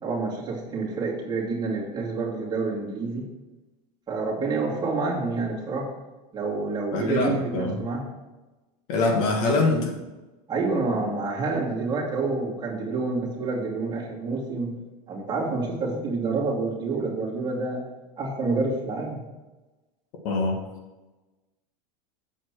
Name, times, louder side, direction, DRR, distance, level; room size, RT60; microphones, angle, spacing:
voice 1, 0.0-3.2 4.1-5.9 6.3-8.0 10.5-14.7 15.1-17.8 18.2-19.2, right 3 dB, 20° right, -5 dB, 2.6 m, -28 dB
voice 2, 6.9-7.8 8.9-9.9 20.2-20.6, left 3 dB, 60° left, 2 dB, 1.9 m, -23 dB
7.6 x 4.9 x 6.2 m, 1.1 s
supercardioid pair, 135°, 20 cm